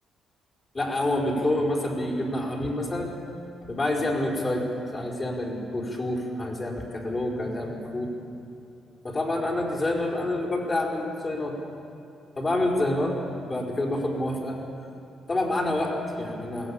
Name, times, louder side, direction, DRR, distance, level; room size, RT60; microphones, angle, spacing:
voice 1, 0.7-3.1 3.6-4.7 4.9-8.1 9.0-11.6 12.4-13.1 13.4-14.6 15.3-16.7, left 1 dB, 30° left, -1 dB, 4.8 m, -27 dB
22.0 x 17.0 x 8.7 m, 2.6 s
cardioid pair, 90°, 0 cm